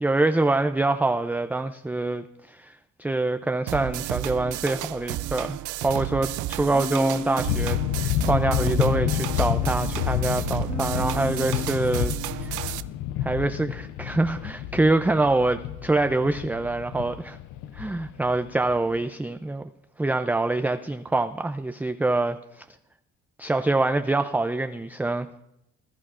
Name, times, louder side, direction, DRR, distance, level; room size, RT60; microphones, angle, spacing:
voice 1, 0.0-12.8 13.2-17.4 17.7-19.6 20.0-22.6 23.4-25.3, right 2 dB, 5° right, 8 dB, 0.3 m, -25 dB
sound 1, 3.7-12.8, right 15 dB, 80° right, 0.5 m, -32 dB
Human voice, 6.7-7.7 8.2-9.8 10.6-11.9, left 3 dB, 25° left, 1.1 m, -35 dB
sound 2, 7.5-19.0, left 12 dB, 85° left, 0.5 m, -29 dB
20.0 x 11.5 x 2.4 m, 0.85 s
cardioid pair, 90°, 30 cm